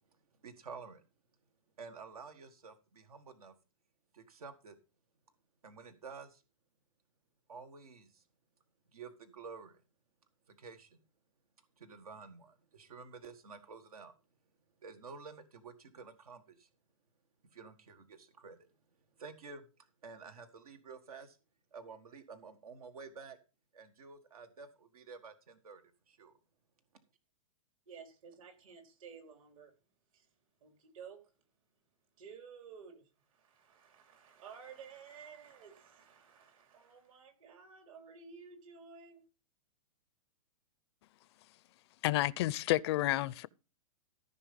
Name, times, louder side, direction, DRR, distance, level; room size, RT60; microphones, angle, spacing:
voice 1, 0.4-1.0 1.8-3.5 4.1-4.8 5.6-6.4 7.5-8.2 8.9-9.8 10.5-11.0 11.8-14.1 14.8-16.7 17.5-18.6 19.2-19.6 20.0-21.4 21.7-23.4 23.7-26.4, right 5 dB, 90° right, 1.6 m, -50 dB
voice 2, 27.9-29.7 30.1-30.3 30.6-31.3 32.2-39.2, right 6 dB, 70° right, 3.7 m, -53 dB
voice 3, 42.0-43.5, left 16 dB, 45° left, 0.5 m, -30 dB
14.5 x 5.6 x 5.2 m
hypercardioid pair, 135°, 18 cm